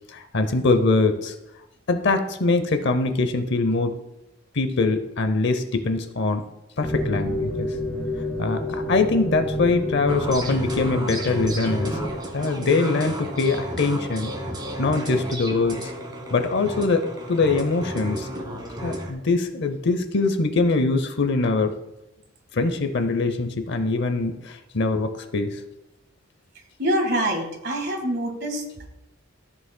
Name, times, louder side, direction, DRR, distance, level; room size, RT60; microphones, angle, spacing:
voice 1, 0.1-1.3 1.9-4.0 4.5-6.4 6.8-7.7 8.4-12.0 12.3-14.3 14.8-15.9 16.3-18.3 18.8-21.8 22.5-25.6, left 3 dB, 60° left, 9 dB, 0.7 m, -23 dB
sound 1, 6.8-12.1, left 1 dB, 25° left, 2.7 m, -29 dB
sound 2, 10.1-19.1, equal, 20° right, 1.4 m, -33 dB
voice 2, 26.8-28.9, right 1 dB, 55° right, 2 dB, 1.7 m, -25 dB
14.0 x 6.9 x 2.2 m, 0.92 s
head